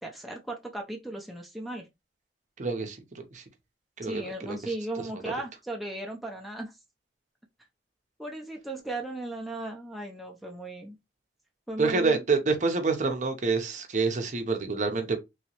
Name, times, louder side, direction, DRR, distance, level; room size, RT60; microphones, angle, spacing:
voice 1, 0.0-1.9 4.0-6.8 8.2-11.0 11.7-12.2, right 1 dB, ahead, 0.5 m, -36 dB
voice 2, 2.6-3.0 3.3-3.4 4.0-4.6 11.8-15.2, right 4 dB, 45° right, 0.6 m, -27 dB
3.1 x 2.9 x 2.9 m
head